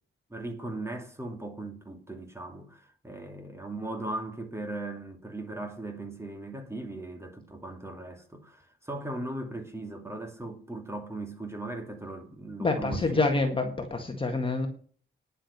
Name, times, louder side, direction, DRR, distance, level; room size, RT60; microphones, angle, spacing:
voice 1, 0.3-13.2, right 2 dB, 10° right, 2.7 m, -38 dB
voice 2, 12.6-14.7, left 3 dB, 25° left, 1.8 m, -27 dB
10.0 x 7.7 x 6.6 m
wide cardioid pair, 140°, 21 cm